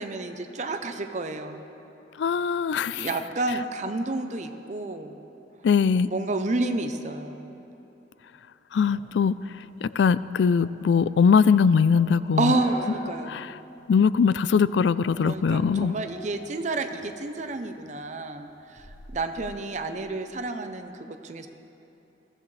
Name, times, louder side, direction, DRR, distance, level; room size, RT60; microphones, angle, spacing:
voice 1, 0.0-1.6 2.9-5.2 6.0-7.5 12.4-13.4 15.2-18.8 19.1-21.5, right 2 dB, 40° right, 7 dB, 0.7 m, -30 dB
voice 2, 2.2-3.1 5.6-6.1 8.7-9.4 9.8-12.5 13.3-13.6 13.9-16.0, left 6 dB, 80° left, 16 dB, 0.3 m, -21 dB
sound 1, 8.8-13.2 13.6-13.7 14.3-14.7 15.0-17.1 17.5-19.9, equal, 60° left, 3.5 m, -45 dB
22.0 x 15.5 x 3.3 m, 2.9 s
head